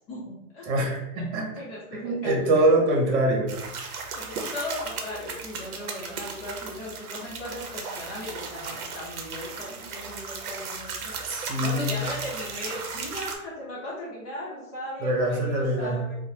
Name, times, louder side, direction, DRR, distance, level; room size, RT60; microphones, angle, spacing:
voice 1, 0.0-0.7 1.1-1.2 1.6-2.6 4.1-16.2, left 1 dB, 30° left, -7 dB, 0.7 m, -38 dB
voice 2, 0.7-1.5 1.9-3.5 11.3-12.0 15.0-16.1, right 1 dB, 50° right, 0 dB, 0.9 m, -24 dB
sound 1, 3.5-13.4, right 4 dB, 75° right, 0.7 m, -36 dB
3.0 x 2.0 x 2.7 m, 0.86 s
hypercardioid pair, 135°, 45 cm